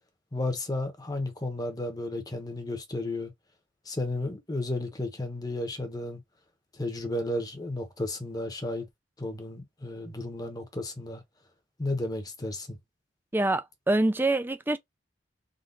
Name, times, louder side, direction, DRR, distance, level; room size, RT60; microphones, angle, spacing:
voice 1, 0.3-3.3 3.9-6.2 6.8-8.9 9.2-11.2 11.8-12.8, left 2 dB, 20° left, 1.0 m, -33 dB
voice 2, 13.3-14.8, right 2 dB, 10° right, 0.4 m, -25 dB
3.8 x 2.5 x 3.9 m
head